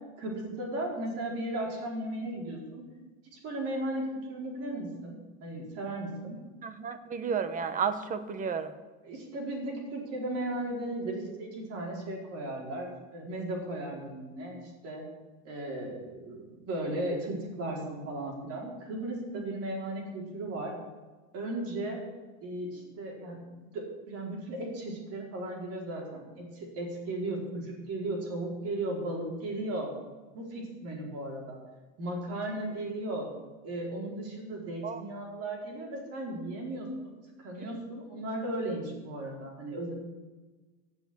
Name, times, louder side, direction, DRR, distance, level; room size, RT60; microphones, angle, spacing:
voice 1, 0.2-2.8 3.3-6.4 9.0-15.0 15.4-20.7 21.3-22.0 22.4-23.4 23.7-29.9 30.3-31.6 32.0-33.3 33.6-39.9, right 1 dB, 40° right, 0 dB, 4.7 m, -36 dB
voice 2, 6.6-8.7 19.3-19.4 34.8-35.0 37.6-37.7, right 6 dB, 20° right, 11 dB, 1.0 m, -32 dB
15.5 x 7.2 x 9.6 m, 1.3 s
supercardioid pair, 160°, 38 cm